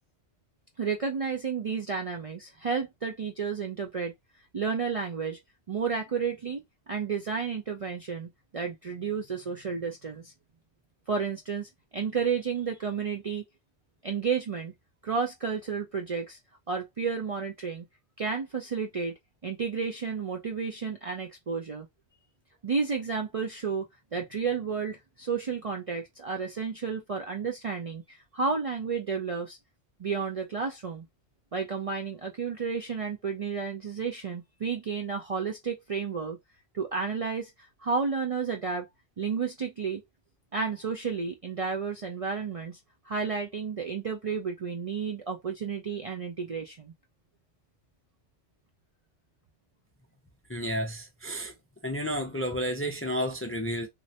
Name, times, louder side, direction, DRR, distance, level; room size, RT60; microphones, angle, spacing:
voice 1, 0.8-4.1 4.5-5.4 5.7-6.6 6.9-10.3 11.1-13.4 14.0-14.7 15.0-16.4 16.7-17.9 18.2-19.1 19.4-21.9 22.6-29.6 30.0-31.1 31.5-36.4 36.7-38.9 39.2-40.0 40.5-42.8 43.0-46.9, right 5 dB, 60° right, 0.3 m, -32 dB
voice 2, 50.5-51.5 51.8-53.9, equal, 20° left, 0.4 m, -31 dB
3.1 x 2.5 x 2.7 m
omnidirectional pair, 1.2 m